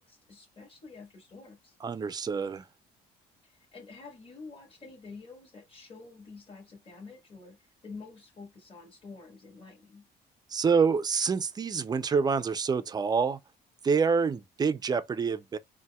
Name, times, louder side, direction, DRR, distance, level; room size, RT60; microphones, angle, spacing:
voice 1, 0.0-1.8 3.4-10.0, left 4 dB, 30° left, 1.5 m, -48 dB
voice 2, 1.8-2.6 10.5-13.4 13.8-15.6, right 5 dB, 25° right, 0.4 m, -27 dB
4.1 x 2.1 x 2.2 m
cardioid pair, 110°, 17 cm